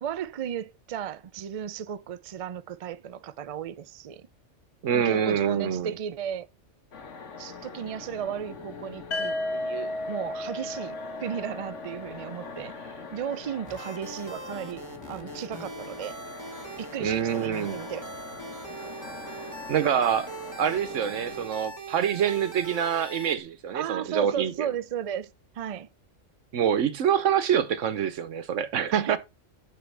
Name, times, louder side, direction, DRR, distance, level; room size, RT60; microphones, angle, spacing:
voice 1, 0.0-4.3 4.9-6.5 7.4-16.2 16.8-18.1 23.7-25.9 28.9-29.2, right 9 dB, 70° right, 0.3 m, -35 dB
voice 2, 4.8-6.0 17.0-17.8 19.7-20.3 20.6-24.7 26.5-29.2, right 8 dB, 85° right, 1.2 m, -26 dB
sound 1, 6.9-21.5, left 5 dB, 80° left, 1.6 m, -43 dB
sound 2, 9.1-13.0, left 1 dB, 60° left, 1.4 m, -34 dB
sound 3, 13.7-23.4, right 4 dB, 15° right, 1.4 m, -41 dB
11.5 x 4.3 x 3.4 m
omnidirectional pair, 1.3 m